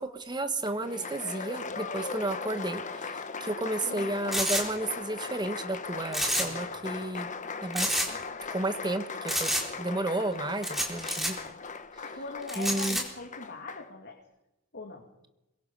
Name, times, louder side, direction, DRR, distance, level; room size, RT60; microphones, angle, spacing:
voice 1, 0.0-7.3 7.6-8.0 8.5-9.5 9.8-11.4 12.6-13.0, right 2 dB, 20° right, 9 dB, 1.3 m, -32 dB
Applause, 0.6-13.9, left 4 dB, 35° left, 1.1 m, -39 dB
sound 1, 4.3-4.6 6.1-6.6 6.9-7.0 7.7-8.1 9.3-9.6 10.6-11.3 12.5-13.0, equal, ahead, 4.2 m, -28 dB
voice 2, 12.0-14.2 14.7-15.1, left 3 dB, 55° left, 2 dB, 2.6 m, -41 dB
24.0 x 22.5 x 5.5 m, 0.90 s
head